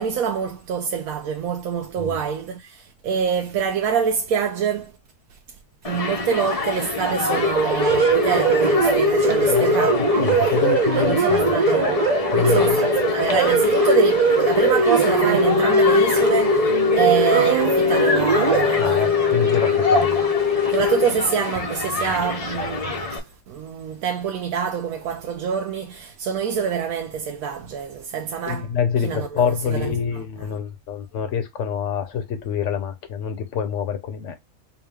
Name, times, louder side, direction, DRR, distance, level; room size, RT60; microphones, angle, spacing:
voice 1, 0.0-4.9 5.8-10.4 10.9-11.9 12.3-12.9 13.1-19.1 20.7-23.2 23.5-28.7 29.0-30.2, right 7 dB, 85° right, 1.1 m, -26 dB
Human group actions, 5.8-23.2, left 3 dB, 35° left, 0.7 m, -28 dB
sound 1, 7.3-21.0, equal, 40° right, 0.6 m, -19 dB
voice 2, 9.4-11.5 12.3-12.8 18.7-20.2 28.5-34.3, left 7 dB, 65° left, 1.1 m, -26 dB
4.7 x 2.3 x 3.4 m
omnidirectional pair, 1.5 m